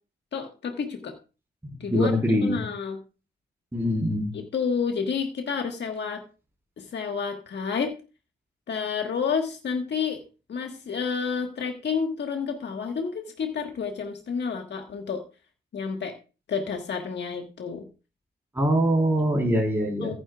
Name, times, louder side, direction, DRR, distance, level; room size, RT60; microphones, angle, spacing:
voice 1, 0.3-1.1 1.8-3.0 4.3-6.2 6.8-7.9 8.7-10.2 10.5-15.2 15.7-16.1 16.5-17.9 20.0-20.1, left 6 dB, 75° left, 4 dB, 1.5 m, -30 dB
voice 2, 1.6-2.6 3.7-4.3 18.5-20.1, equal, 15° right, -1 dB, 4.2 m, -23 dB
14.5 x 10.0 x 2.4 m, 0.32 s
cardioid pair, 90°, 18 cm